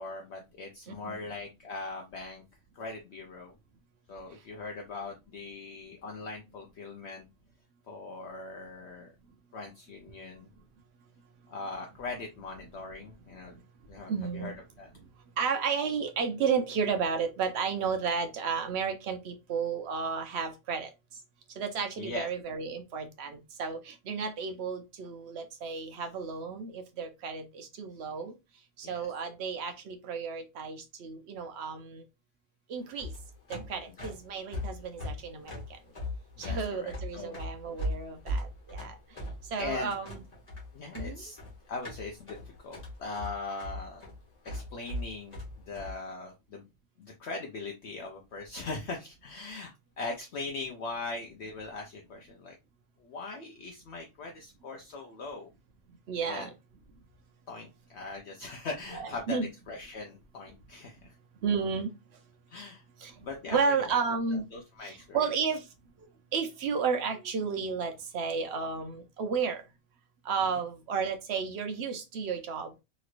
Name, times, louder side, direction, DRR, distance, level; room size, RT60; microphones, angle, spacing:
voice 1, 0.0-2.4 2.7-3.5 4.1-7.3 7.9-9.1 9.5-10.5 11.5-13.6 13.9-14.9 22.0-22.3 28.8-29.1 34.0-34.1 36.4-37.4 39.6-39.9 40.7-41.4 41.7-42.4 42.6-44.0 44.4-46.6 47.0-52.6 53.0-55.5 56.2-56.5 57.5-59.4 59.7-61.1 62.5-62.8 63.2-63.7 64.3-65.2 70.5-70.6, left 3 dB, 60° left, 0.8 m, -40 dB
voice 2, 0.9-1.2 14.1-14.5 15.4-20.9 21.6-28.3 28.8-32.0 32.7-33.1 33.5-35.6 36.4-38.9 39.5-40.2 40.9-41.2 56.1-56.5 58.9-59.5 61.4-61.9 63.0-63.1 63.5-64.5 64.8-65.6 66.3-69.6 70.2-72.7, right 5 dB, 60° right, 0.8 m, -32 dB
sound 1, 32.8-45.9, left 1 dB, 30° left, 1.3 m, -39 dB
3.0 x 3.0 x 2.4 m
omnidirectional pair, 1.4 m